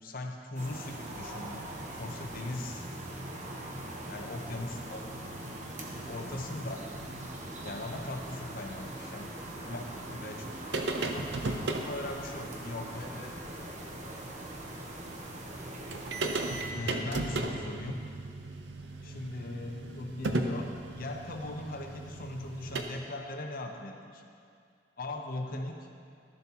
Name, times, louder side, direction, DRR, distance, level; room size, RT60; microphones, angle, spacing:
voice 1, 0.0-2.8 4.1-5.0 6.1-7.0 7.6-10.5 11.0-13.1 16.7-18.1 19.0-24.2 25.0-25.9, left 2 dB, 55° left, 3 dB, 0.8 m, -39 dB
sound 1, 0.6-16.7, right 1 dB, 45° right, 1.0 m, -41 dB
sound 2, 10.7-11.9 13.4-13.5 13.9-14.0 15.6-15.7 15.9-22.8, right 2 dB, 85° right, 0.6 m, -35 dB
voice 2, 12.9-14.1 18.8-19.1, left 2 dB, 70° left, -2 dB, 1.5 m, -53 dB
13.0 x 7.0 x 2.9 m, 2.3 s
head